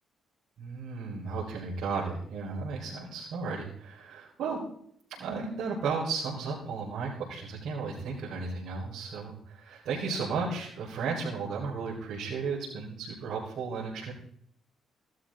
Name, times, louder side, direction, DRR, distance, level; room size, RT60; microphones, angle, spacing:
voice 1, 0.6-4.6 5.1-14.1, right 4 dB, 75° right, -5 dB, 4.8 m, -34 dB
17.5 x 13.0 x 3.9 m, 0.64 s
cardioid pair, 90°, 0 cm